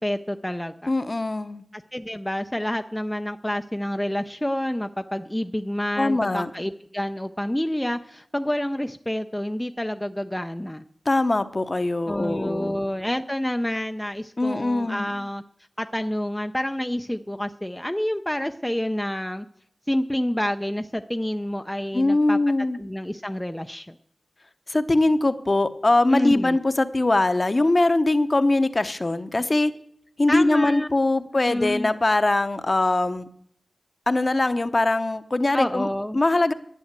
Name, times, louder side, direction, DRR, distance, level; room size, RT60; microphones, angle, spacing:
voice 1, 0.0-0.9 1.7-10.8 12.1-15.4 15.8-19.5 19.9-22.4 22.8-24.0 26.1-26.6 30.3-30.9 31.5-31.9 35.5-36.2, left 1 dB, 10° left, 7 dB, 0.5 m, -28 dB
voice 2, 0.9-1.6 6.0-6.5 11.1-12.8 14.4-15.2 21.9-22.8 24.7-29.7 30.2-33.3 34.1-35.9 36.1-36.5, left 2 dB, 40° left, 10 dB, 0.8 m, -22 dB
11.0 x 9.2 x 8.1 m, 0.69 s
wide cardioid pair, 80°, 0 cm